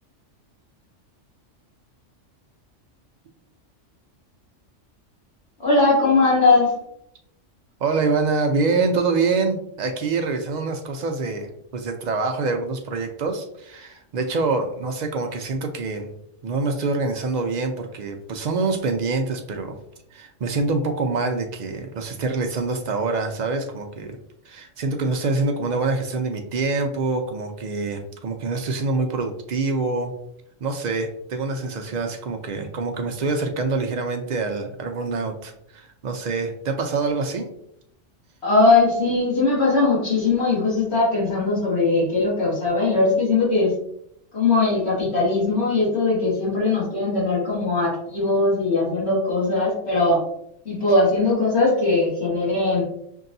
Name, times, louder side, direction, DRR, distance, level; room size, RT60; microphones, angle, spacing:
voice 1, 5.6-6.8 38.4-43.7 44.3-50.2 50.6-52.8, left 3 dB, 60° left, -6 dB, 1.6 m, -20 dB
voice 2, 7.8-16.1 16.4-19.8 20.1-24.2 24.5-30.2 30.6-37.5, right 3 dB, 75° right, 4 dB, 0.4 m, -25 dB
5.5 x 2.6 x 2.6 m, 0.73 s
omnidirectional pair, 1.3 m